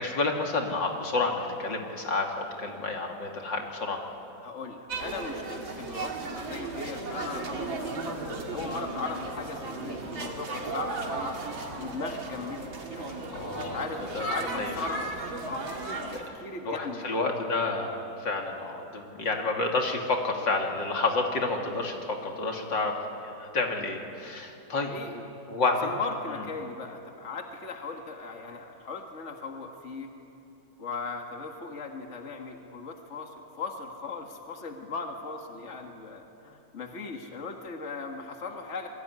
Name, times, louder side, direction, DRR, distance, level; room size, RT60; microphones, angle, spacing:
voice 1, 0.0-4.0 13.3-13.8 14.1-14.3 14.6-14.7 16.1-16.4 16.6-22.9 23.2-25.0 25.5-25.9 26.3-26.4, left 3 dB, 70° left, 1 dB, 3.3 m, -29 dB
voice 2, 4.4-8.2 8.5-11.4 11.7-15.1 15.4-15.6 15.9-17.1 24.8-25.3 25.8-30.1 30.8-38.9, left 4 dB, 40° left, 3 dB, 2.2 m, -38 dB
sound 1, 4.9-16.2, right 2 dB, 85° right, 3.4 m, -35 dB
27.0 x 22.5 x 9.8 m, 2.8 s
omnidirectional pair, 2.1 m